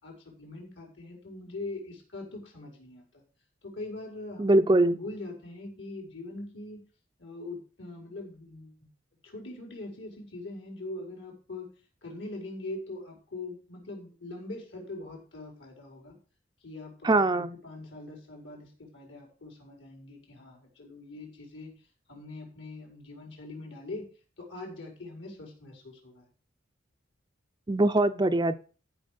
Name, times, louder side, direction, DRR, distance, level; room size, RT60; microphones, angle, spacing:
voice 1, 0.0-3.2 3.6-6.8 7.2-8.8 9.2-11.7 12.0-16.2 16.6-21.7 22.1-24.1 24.4-26.2, left 2 dB, 70° left, 1 dB, 5.1 m, -42 dB
voice 2, 4.4-5.0 17.0-17.6 27.7-28.5, right 2 dB, 25° right, 8 dB, 0.6 m, -22 dB
13.5 x 6.3 x 5.2 m, 0.37 s
head